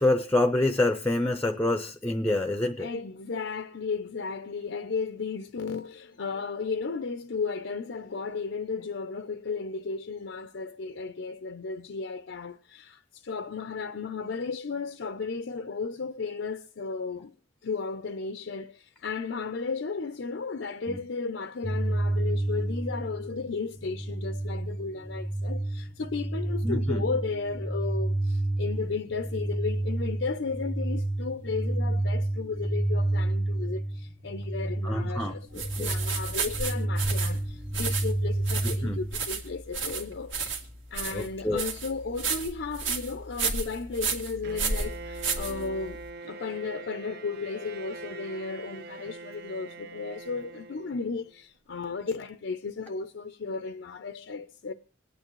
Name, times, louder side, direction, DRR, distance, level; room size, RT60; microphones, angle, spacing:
voice 1, 0.0-2.9 20.9-21.0 26.6-27.0 34.8-35.9 38.6-39.0 41.1-41.6, left 2 dB, 10° left, 0.6 m, -27 dB
voice 2, 2.8-17.3 17.6-40.3 40.9-54.7, left 4 dB, 70° left, 0.5 m, -34 dB
sound 1, 21.6-39.2, right 1 dB, 15° right, 1.0 m, -30 dB
sound 2, 35.6-46.0, right 5 dB, 70° right, 2.1 m, -32 dB
Bowed string instrument, 44.4-51.4, right 3 dB, 55° right, 0.6 m, -43 dB
26.5 x 9.0 x 3.1 m
head